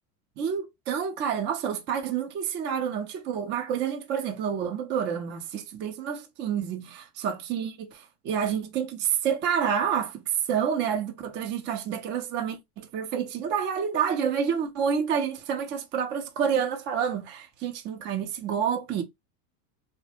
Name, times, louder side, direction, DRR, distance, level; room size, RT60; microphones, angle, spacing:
voice 1, 0.4-10.2 10.5-19.0, right 7 dB, 25° right, 0.4 m, -29 dB
3.1 x 2.0 x 2.7 m
supercardioid pair, 140°, 46 cm